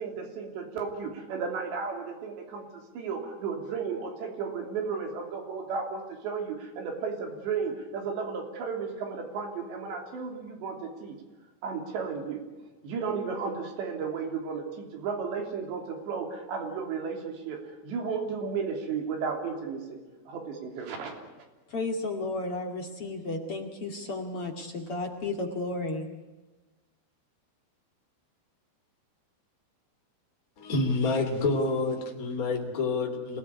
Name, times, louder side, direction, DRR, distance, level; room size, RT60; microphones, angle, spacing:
voice 1, 0.0-11.2 11.6-12.4 12.8-20.0 20.3-21.2, right 5 dB, 75° right, 3 dB, 5.4 m, -34 dB
voice 2, 21.7-26.1, left 2 dB, 40° left, 3 dB, 2.5 m, -33 dB
voice 3, 30.6-33.4, left 3 dB, 20° left, 2 dB, 3.1 m, -28 dB
26.5 x 18.0 x 9.7 m, 1.2 s
omnidirectional pair, 5.1 m